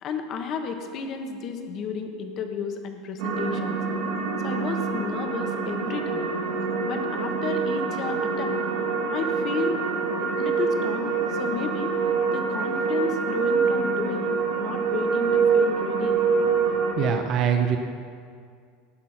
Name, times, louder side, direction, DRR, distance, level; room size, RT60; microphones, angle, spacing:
voice 1, 0.0-3.8 4.4-6.3 6.8-8.6 9.1-9.9 10.2-12.0 12.3-14.3 14.6-16.2, left 5 dB, 30° left, 6 dB, 1.0 m, -32 dB
sound 1, 3.2-16.9, right 5 dB, 65° right, 1.8 m, -25 dB
voice 2, 16.7-17.8, right 8 dB, 30° right, 5 dB, 0.7 m, -24 dB
17.5 x 5.9 x 5.9 m, 2.2 s
supercardioid pair, 175°, 0 cm